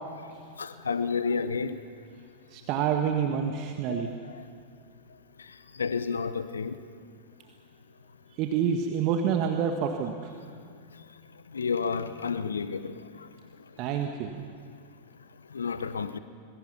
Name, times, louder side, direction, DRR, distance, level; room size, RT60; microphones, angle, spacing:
voice 1, 0.6-1.8 3.9-4.1 5.8-6.7 11.5-12.9 15.5-16.2, left 5 dB, 70° left, 0.9 m, -30 dB
voice 2, 2.5-4.1 8.4-10.1 13.8-14.4, right 7 dB, 40° right, 1.6 m, -27 dB
26.0 x 23.0 x 5.8 m
figure-of-eight pair, 90°, 0 cm